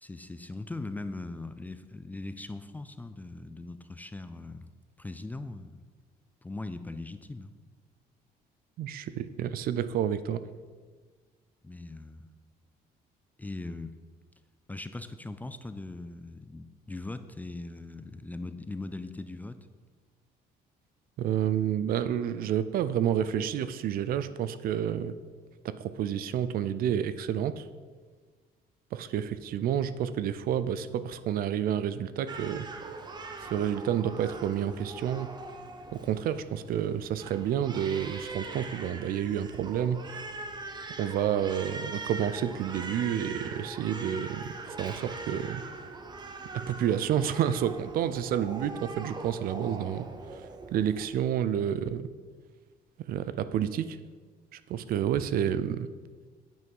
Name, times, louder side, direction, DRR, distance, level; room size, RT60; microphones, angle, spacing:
voice 1, 0.0-4.7 5.0-5.8 6.4-7.5 11.6-12.3 13.4-14.0 14.7-19.6, left 2 dB, 10° left, 10 dB, 0.3 m, -40 dB
voice 2, 8.8-10.4 21.2-25.1 25.6-27.6 28.9-32.7 33.5-35.3 35.9-40.0 41.0-45.6 46.5-50.0 50.7-52.1 53.1-54.0 54.7-55.9, right 9 dB, 60° right, 14 dB, 0.5 m, -29 dB
Crying sobbing, 32.3-51.1, right 3 dB, 25° right, 0.7 m, -42 dB
8.8 x 5.9 x 5.4 m, 1.5 s
cardioid pair, 140°, 17 cm